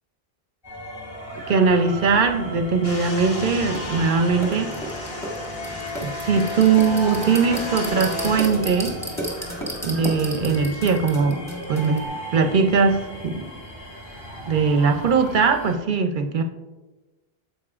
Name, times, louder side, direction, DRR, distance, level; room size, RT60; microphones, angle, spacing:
sound 1, 0.6-15.8, equal, 25° left, 3.0 m, -37 dB
voice 1, 1.5-4.7 6.0-8.9 9.8-11.4 11.7-12.0 12.3-13.5 14.5-16.4, right 5 dB, 60° right, 6 dB, 0.7 m, -20 dB
sound 2, 2.8-8.5, left 2 dB, 75° left, 1.4 m, -32 dB
sound 3, 3.7-3.8 4.4-12.0, equal, 5° left, 1.5 m, -33 dB
9.8 x 7.6 x 2.4 m, 1.1 s
omnidirectional pair, 1.0 m